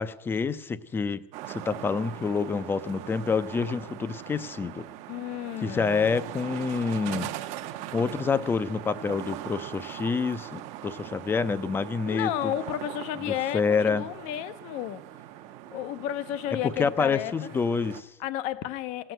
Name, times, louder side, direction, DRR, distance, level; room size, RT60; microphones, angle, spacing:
voice 1, 0.0-4.8 5.6-7.3 7.9-12.5 13.3-14.0 16.8-18.1, left 5 dB, 15° left, 0.5 m, -27 dB
sound 1, 1.3-18.0, right 13 dB, 55° right, 0.8 m, -41 dB
voice 2, 5.1-6.2 12.1-15.0 15.7-17.5 18.2-19.1, left 12 dB, 60° left, 0.7 m, -32 dB
16.5 x 7.6 x 7.9 m
supercardioid pair, 140°, 14 cm